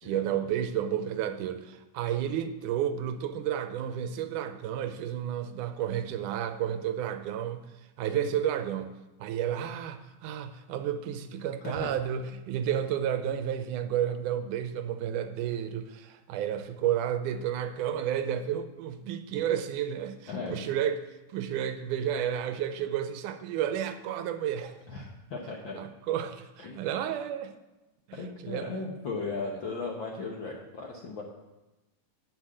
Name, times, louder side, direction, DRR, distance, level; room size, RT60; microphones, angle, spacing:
voice 1, 0.0-7.6 8.0-8.9 9.2-21.0 21.3-24.8 25.7-27.6 28.1-28.7, right 10 dB, 80° right, 10 dB, 2.1 m, -31 dB
voice 2, 20.3-20.6 24.9-25.8 26.6-26.8 28.1-31.2, left 3 dB, 65° left, 0 dB, 1.2 m, -36 dB
9.5 x 7.5 x 7.7 m, 1.1 s
omnidirectional pair, 3.7 m